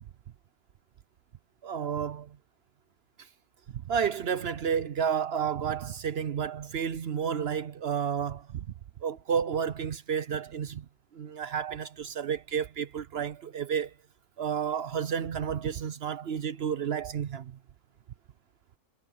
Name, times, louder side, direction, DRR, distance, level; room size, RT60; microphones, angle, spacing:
voice 1, 1.6-2.4 3.8-8.6 9.0-10.9 11.1-13.9 14.4-17.5, right 7 dB, 60° right, 0.7 m, -31 dB
omnidirectional pair, 1.6 m